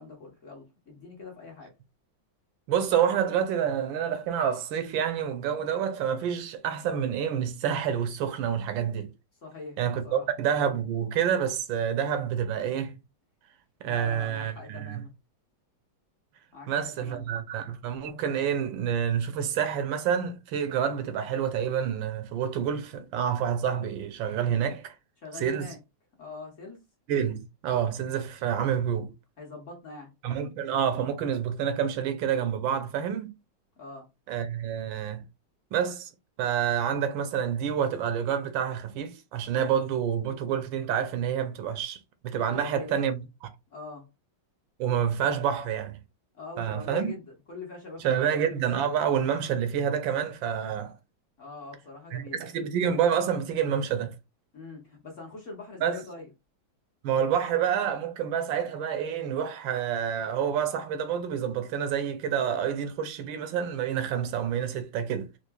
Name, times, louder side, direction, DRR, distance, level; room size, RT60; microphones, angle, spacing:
voice 1, 0.0-1.7 9.4-10.3 13.8-15.1 16.5-17.3 25.2-25.8 26.2-26.8 29.4-30.1 33.8-34.1 42.5-43.2 43.7-44.1 46.3-48.3 51.4-52.4 54.5-56.3, left 3 dB, 45° left, 1.2 m, -43 dB
voice 2, 2.7-9.1 9.8-13.0 13.8-15.0 16.7-24.9 25.4-25.7 27.1-29.1 30.2-33.3 34.3-35.2 35.7-36.1 36.4-42.0 42.2-43.2 44.8-46.0 46.6-47.1 48.0-51.0 52.1-54.1 55.8-56.0 57.0-65.3, right 8 dB, 80° right, 1.3 m, -28 dB
4.5 x 2.5 x 2.2 m
omnidirectional pair, 2.1 m